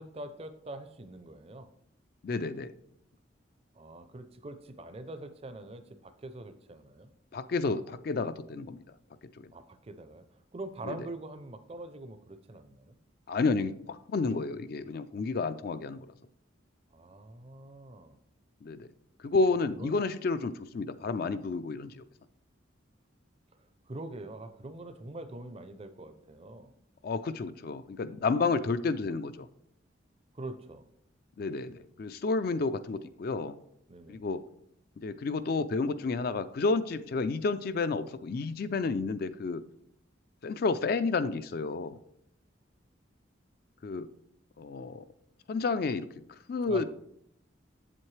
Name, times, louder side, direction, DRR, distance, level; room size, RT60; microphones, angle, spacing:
voice 1, 0.0-1.7 3.7-7.1 9.5-13.0 16.9-18.2 19.5-20.0 23.5-26.7 30.3-30.9 33.9-34.2 46.7-46.8, right 2 dB, 30° right, 11 dB, 0.5 m, -44 dB
voice 2, 2.2-2.7 7.3-8.8 10.9-11.0 13.3-16.1 18.6-18.9 19.2-22.0 27.0-29.5 31.4-33.5 34.1-34.4 35.0-39.6 40.4-42.0 43.8-44.1 44.6-45.0 45.5-46.1 46.5-46.8, left 3 dB, 50° left, 12 dB, 0.3 m, -30 dB
8.0 x 7.5 x 3.2 m, 0.72 s
head